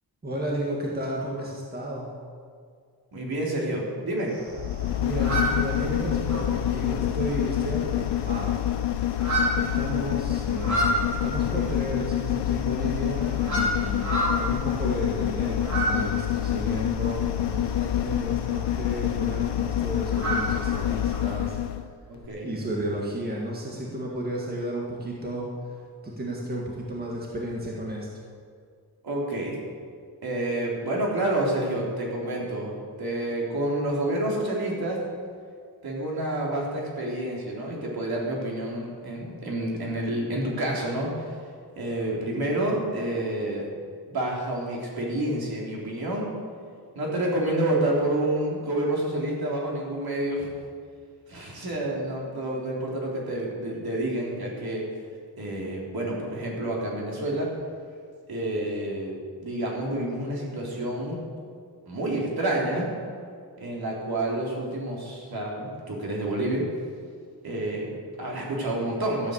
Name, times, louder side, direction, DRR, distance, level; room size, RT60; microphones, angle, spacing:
voice 1, 0.2-2.1 5.0-8.6 9.6-21.6 22.4-25.8 26.0-28.1, right 1 dB, 25° right, -3 dB, 1.8 m, -33 dB
voice 2, 3.1-4.3 22.1-22.5 29.0-29.6 30.2-35.0 35.8-41.3 41.8-43.6 44.1-46.3 47.0-50.5 51.3-54.8 55.4-57.5 58.3-59.1 59.4-61.2 61.9-62.9 63.6-66.6 67.4-69.3, right 1 dB, 65° right, -3 dB, 3.6 m, -29 dB
sound 1, 4.3-21.2, right 1 dB, 45° right, 4.6 m, -33 dB
sound 2, 4.5-21.9 22.2-22.3, left 12 dB, 85° left, 0.6 m, -27 dB
13.0 x 8.5 x 8.0 m, 2.1 s
wide cardioid pair, 160°, 40 cm